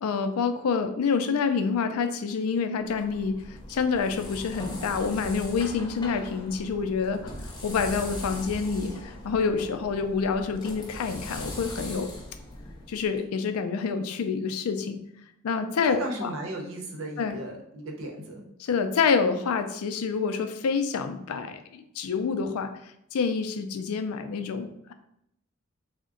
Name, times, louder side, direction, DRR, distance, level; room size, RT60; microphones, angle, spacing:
voice 1, 0.0-12.1 12.9-15.0 15.4-16.3 17.2-17.4 18.6-22.7 23.1-24.9, left 5 dB, 85° left, 9 dB, 0.4 m, -27 dB
sound 1, 2.8-13.2, left 1 dB, 20° left, 0.6 m, -40 dB
voice 2, 15.8-18.4, right 1 dB, 65° right, 1 dB, 0.7 m, -36 dB
3.6 x 2.1 x 3.7 m, 0.75 s
head